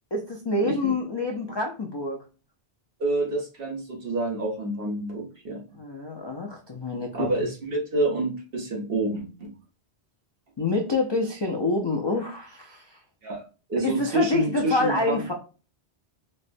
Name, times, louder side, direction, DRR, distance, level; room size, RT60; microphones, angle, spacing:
voice 1, 0.1-2.2 5.8-7.3 10.6-13.0 13.8-15.3, left 2 dB, 45° left, 1 dB, 0.3 m, -27 dB
voice 2, 0.6-1.0 3.0-5.6 7.1-9.5 13.2-13.4 13.7-15.3, right 2 dB, 60° right, 0 dB, 1.1 m, -28 dB
4.2 x 2.1 x 2.5 m, 0.34 s
omnidirectional pair, 1.1 m